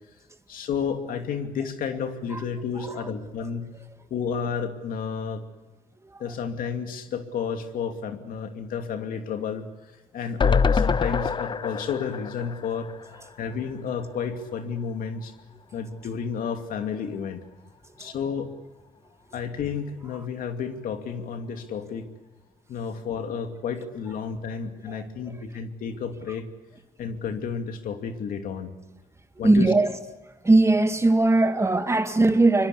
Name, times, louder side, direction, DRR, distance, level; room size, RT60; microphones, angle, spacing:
voice 1, 0.5-3.7 4.1-5.4 6.2-12.9 13.4-15.3 15.7-17.4 18.0-18.5 19.3-22.1 22.7-26.5 27.0-28.7 29.4-29.7, left 6 dB, 70° left, 2.7 m, -31 dB
sound 1, 10.4-13.6 14.0-14.1 14.3-14.4, left 5 dB, 30° left, 0.7 m, -25 dB
voice 2, 29.4-29.9 30.4-32.7, right 2 dB, 20° right, 2.1 m, -20 dB
24.5 x 23.0 x 8.4 m
cardioid pair, 80°, 15 cm